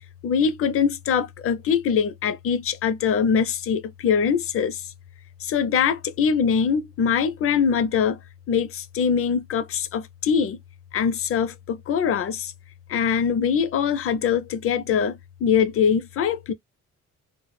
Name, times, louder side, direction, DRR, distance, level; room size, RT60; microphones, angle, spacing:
voice 1, 0.2-4.8 5.4-8.2 8.5-10.6 10.9-12.5 12.9-16.5, left 7 dB, 50° left, 0.4 m, -23 dB
2.1 x 2.1 x 3.0 m
cardioid pair, 90°, 30 cm